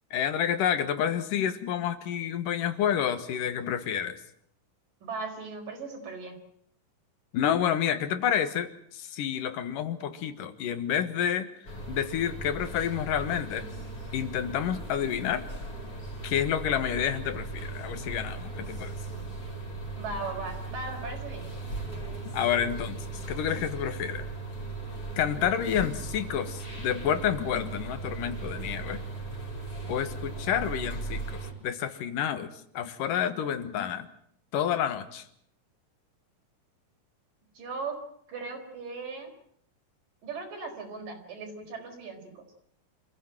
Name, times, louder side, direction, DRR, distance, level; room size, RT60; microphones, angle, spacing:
voice 1, 0.1-4.2 7.3-13.7 14.1-15.4 16.2-19.0 22.2-24.3 25.2-29.0 29.9-34.1 34.5-35.3, left 9 dB, 80° left, 11 dB, 3.1 m, -29 dB
voice 2, 5.0-6.4 20.0-21.5 37.5-38.0 38.3-39.3 40.2-42.4, right 3 dB, 80° right, 3 dB, 6.3 m, -38 dB
sound 1, 11.6-31.5, right 3 dB, 25° left, 5.3 m, -38 dB
27.0 x 15.5 x 9.1 m, 0.68 s
omnidirectional pair, 3.8 m